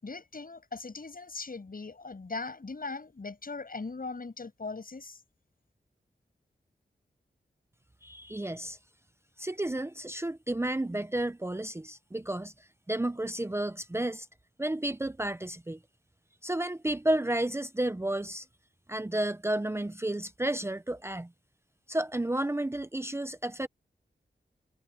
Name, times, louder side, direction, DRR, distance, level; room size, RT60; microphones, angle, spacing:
voice 1, 0.0-5.2, left 3 dB, 55° left, 7.7 m, -39 dB
voice 2, 8.0-8.8 9.4-12.5 12.9-14.3 14.6-15.8 16.4-18.5 18.9-21.3 21.9-23.7, right 1 dB, 15° right, 0.7 m, -31 dB
wide cardioid pair, 65°, 18 cm